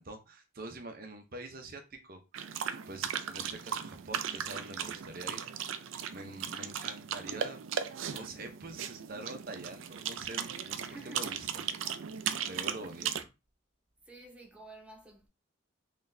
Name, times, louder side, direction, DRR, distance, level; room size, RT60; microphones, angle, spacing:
voice 1, 0.0-2.2 2.9-5.8 6.1-7.6 8.0-11.5 11.7-11.9 12.5-13.3, right 2 dB, 45° right, 0.7 m, -45 dB
sound 1, 2.3-13.2, right 8 dB, 75° right, 0.4 m, -37 dB
voice 2, 10.8-11.3 13.0-13.1 14.0-15.3, right 2 dB, 5° right, 0.5 m, -51 dB
4.0 x 3.2 x 2.6 m
head